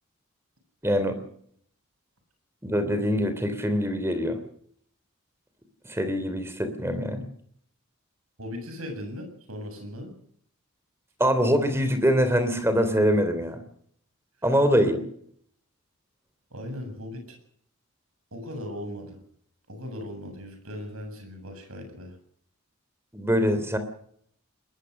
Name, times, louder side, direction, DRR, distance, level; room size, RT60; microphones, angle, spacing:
voice 1, 0.8-1.2 2.6-4.4 5.8-7.3 11.2-13.6 14.4-15.0 23.1-23.8, equal, 10° right, 10 dB, 3.2 m, -24 dB
voice 2, 8.4-10.2 16.5-17.4 18.3-19.2 19.7-22.2, left 1 dB, 80° right, 5 dB, 7.5 m, -38 dB
21.0 x 20.5 x 6.6 m, 0.66 s
head